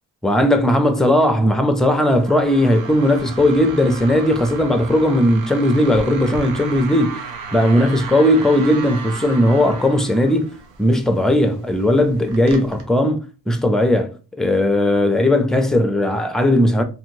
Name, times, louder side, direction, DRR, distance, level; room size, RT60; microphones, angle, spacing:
voice 1, 0.2-10.5 10.8-16.8, left 1 dB, ahead, 0.5 m, -17 dB
sound 1, 1.8-12.8, right 5 dB, 80° right, 0.7 m, -35 dB
2.8 x 2.6 x 2.7 m
supercardioid pair, 70°, 36 cm